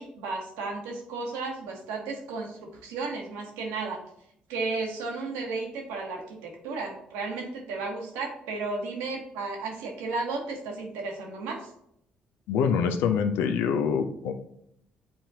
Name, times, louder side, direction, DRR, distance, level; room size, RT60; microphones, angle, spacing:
voice 1, 0.0-4.0 4.5-11.6, right 3 dB, 70° right, 1 dB, 1.3 m, -34 dB
voice 2, 12.5-14.3, left 6 dB, 65° left, 7 dB, 0.6 m, -25 dB
8.6 x 4.3 x 2.8 m, 0.72 s
figure-of-eight pair, 45°, 4 cm